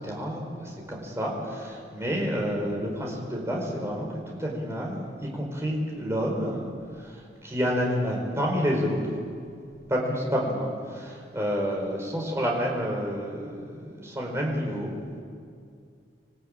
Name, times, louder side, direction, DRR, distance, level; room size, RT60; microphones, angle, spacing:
voice 1, 0.0-6.7 7.0-9.0 9.9-15.2, equal, 15° right, -1 dB, 4.9 m, -29 dB
26.5 x 16.5 x 9.0 m, 2.3 s
head